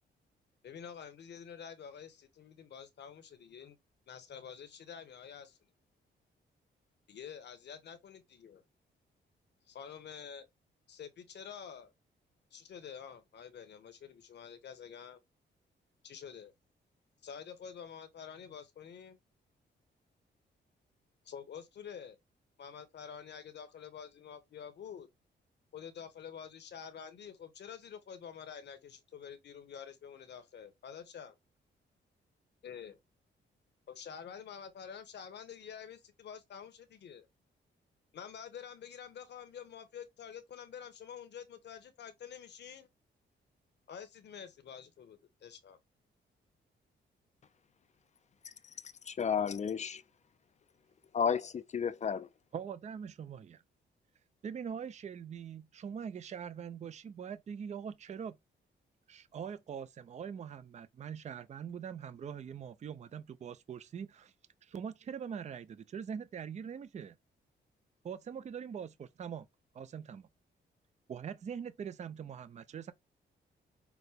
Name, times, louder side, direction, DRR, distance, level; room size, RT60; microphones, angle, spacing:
voice 1, 0.6-3.8 4.1-5.6 7.1-8.6 9.7-10.5 10.9-11.9 12.5-15.2 16.0-16.5 17.2-19.2 21.2-22.2 22.6-25.1 25.7-31.3 32.6-33.0 33.9-37.3 38.1-42.9 43.9-45.8, left 7 dB, 65° left, 1.0 m, -48 dB
voice 2, 49.1-50.0 51.1-52.3, left 7 dB, 40° left, 0.4 m, -32 dB
voice 3, 52.5-53.6 54.4-58.4 59.1-64.3 64.6-67.2 68.0-69.5 69.7-70.3 71.1-72.9, right 7 dB, 35° right, 0.4 m, -43 dB
5.9 x 2.2 x 3.3 m
cardioid pair, 110°, 19 cm